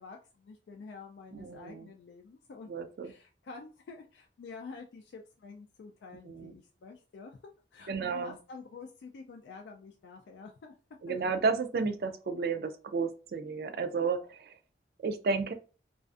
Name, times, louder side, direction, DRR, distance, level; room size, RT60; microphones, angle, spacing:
voice 1, 0.0-2.7 3.0-7.4 7.7-10.8 11.1-11.3, left 4 dB, 80° left, 2 dB, 0.3 m, -48 dB
voice 2, 1.3-1.9 2.7-3.1 6.3-6.5 7.9-8.4 11.0-14.6 15.0-15.5, right 4 dB, 55° right, 8 dB, 0.3 m, -32 dB
2.4 x 2.3 x 2.4 m, 0.36 s
head